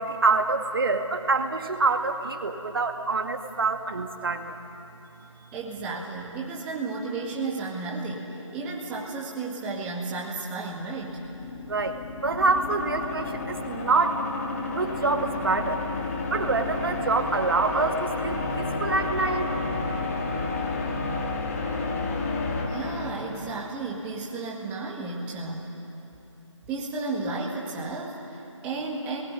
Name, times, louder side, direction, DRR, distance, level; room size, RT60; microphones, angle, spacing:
voice 1, 0.0-4.5 11.7-14.2 14.7-15.9 16.3-19.5, right 3 dB, 45° right, 5 dB, 2.1 m, -26 dB
voice 2, 5.5-11.2 22.7-25.7 26.7-29.2, right 3 dB, 10° right, -2 dB, 1.8 m, -33 dB
sound 1, 10.9-23.9, left 3 dB, 25° left, 1.9 m, -31 dB
28.5 x 20.5 x 9.9 m, 3.0 s
figure-of-eight pair, 160°, 17 cm